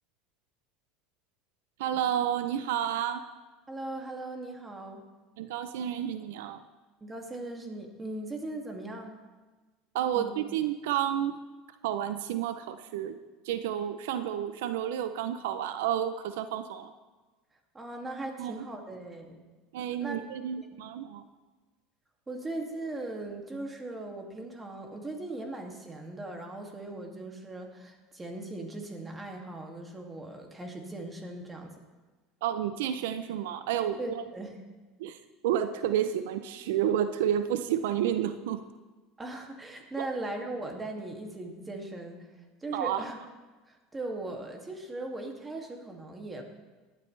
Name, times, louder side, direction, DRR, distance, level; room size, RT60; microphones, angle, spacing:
voice 1, 1.8-3.3 5.4-6.6 9.9-11.4 11.8-13.2 13.4-16.9 18.4-18.7 19.7-21.2 32.4-34.2 35.0-38.6 40.0-40.1 42.7-43.0, right 10 dB, 85° right, 10 dB, 0.6 m, -30 dB
voice 2, 3.7-5.0 7.0-9.2 10.1-10.3 17.7-19.4 20.0-20.2 20.6-20.8 22.3-31.7 34.0-34.6 39.2-42.2 42.6-43.2 43.7-46.4, right 2 dB, 15° right, 2 dB, 2.4 m, -39 dB
18.5 x 11.5 x 3.4 m, 1.3 s
supercardioid pair, 110°, 0 cm